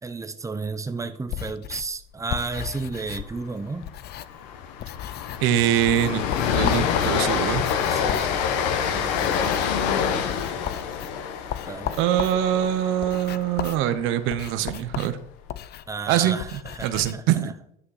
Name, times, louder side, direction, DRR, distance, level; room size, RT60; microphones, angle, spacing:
voice 1, 0.0-3.9 7.9-9.5 11.7-12.0 15.9-17.5, right 4 dB, 15° right, 0.9 m, -33 dB
sound 1, 1.2-4.5 4.8-5.6 5.9-17.1, left 12 dB, 50° left, 0.6 m, -36 dB
Train, 2.9-3.2 3.5-3.7 4.0-14.2, left 7 dB, 85° left, 1.2 m, -27 dB
voice 2, 5.4-6.2 6.5-7.7 12.0-15.2 16.1-16.4 16.8-17.5, right 11 dB, 70° right, 0.9 m, -23 dB
10.5 x 6.0 x 4.9 m
supercardioid pair, 80°, 21 cm